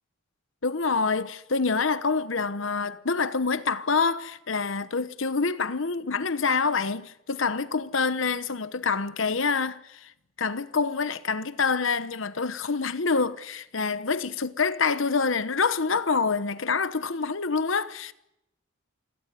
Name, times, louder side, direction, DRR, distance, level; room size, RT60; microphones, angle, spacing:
voice 1, 0.6-10.1 10.4-18.1, left 4 dB, 65° left, 1.0 m, -26 dB
28.0 x 17.0 x 9.7 m
head